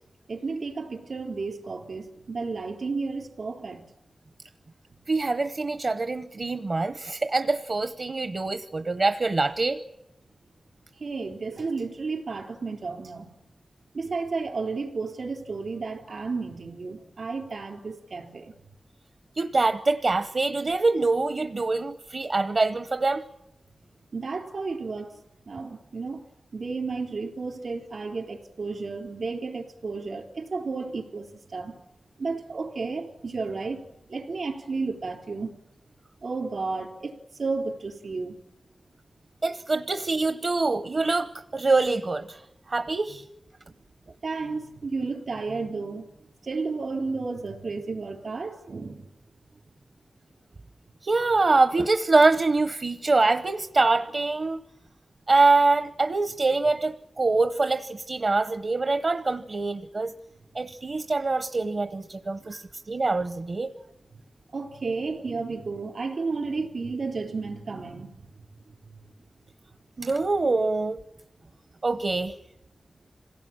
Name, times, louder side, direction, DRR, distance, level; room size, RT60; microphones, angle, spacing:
voice 1, 0.3-3.9 11.0-13.3 13.9-18.5 24.1-25.2 25.5-26.2 26.5-31.7 32.2-33.8 34.1-35.5 36.2-38.4 44.2-46.1 46.4-49.1 62.5-62.6 64.5-68.1, right 4 dB, 70° right, 4 dB, 3.7 m, -32 dB
voice 2, 5.1-9.8 19.4-23.2 39.4-42.4 42.7-43.2 51.0-54.6 55.3-60.1 60.5-63.7 70.0-71.0 71.8-72.4, right 3 dB, 50° right, 10 dB, 0.8 m, -24 dB
26.5 x 17.5 x 8.8 m, 0.92 s
wide cardioid pair, 100°, 0 cm